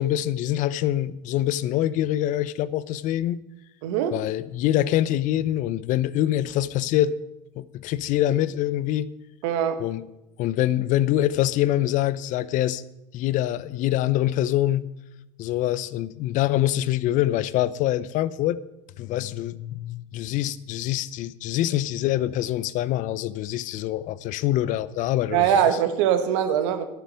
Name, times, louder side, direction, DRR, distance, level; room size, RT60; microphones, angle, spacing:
voice 1, 0.0-3.4 4.1-7.2 7.6-9.1 9.8-10.0 10.4-12.8 13.1-14.9 15.4-18.6 19.0-25.8, left 13 dB, 55° left, 0.6 m, -25 dB
voice 2, 3.8-4.1 9.4-9.8 25.3-26.8, right 9 dB, 70° right, 1.5 m, -22 dB
11.5 x 6.9 x 8.5 m
supercardioid pair, 95°, 16 cm